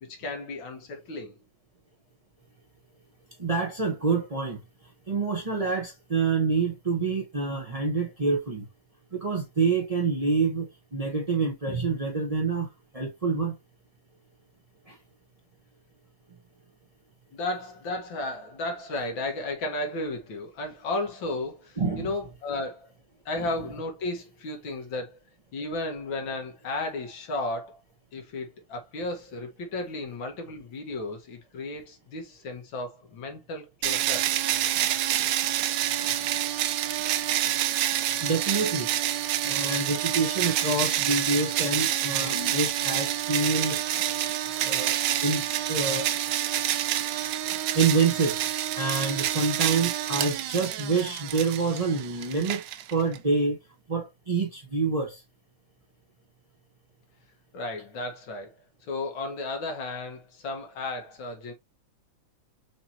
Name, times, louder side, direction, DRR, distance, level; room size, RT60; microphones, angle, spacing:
voice 1, 0.0-1.4 17.3-22.9 23.3-25.2 25.5-27.8 28.1-34.2 57.5-58.6 58.9-61.5, left 2 dB, 65° left, 1.9 m, -34 dB
voice 2, 3.4-4.6 5.1-8.6 9.1-12.7 12.9-13.5 14.9-15.0 21.8-22.1 23.4-23.5 38.2-38.9 39.4-43.8 44.6-46.1 47.7-48.4 48.7-52.6 52.9-53.6 53.9-55.2, right 4 dB, 50° right, 0.4 m, -27 dB
sound 1, 33.8-53.2, right 12 dB, 75° right, 1.1 m, -28 dB
6.6 x 2.9 x 2.8 m
omnidirectional pair, 2.3 m